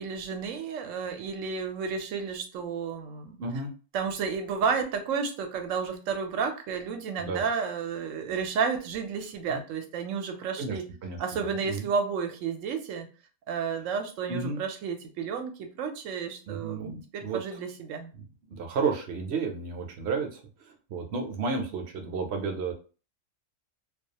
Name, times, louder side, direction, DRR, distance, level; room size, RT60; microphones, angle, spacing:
voice 1, 0.0-3.4 3.9-10.8 11.2-13.1 13.5-18.1, right 6 dB, 85° right, 5 dB, 1.0 m, -31 dB
voice 2, 3.4-3.7 7.2-7.4 9.5-9.6 10.6-11.2 11.6-11.9 14.3-14.6 16.5-17.4 18.1-22.7, right 4 dB, 65° right, 4 dB, 0.8 m, -32 dB
2.3 x 2.3 x 2.7 m, 0.36 s
omnidirectional pair, 1.3 m